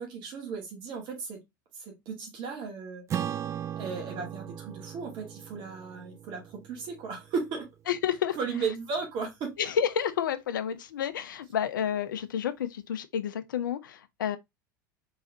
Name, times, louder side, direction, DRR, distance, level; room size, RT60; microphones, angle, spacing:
voice 1, 0.0-1.4 1.8-3.0 3.8-7.7 8.3-9.6, right 5 dB, 45° right, 2.0 m, -35 dB
Acoustic guitar / Strum, 3.1-7.8, right 10 dB, 25° right, 0.4 m, -38 dB
voice 2, 7.9-8.4 9.6-14.4, left 8 dB, 75° left, 0.6 m, -30 dB
3.9 x 3.9 x 2.7 m
figure-of-eight pair, 80°, 11 cm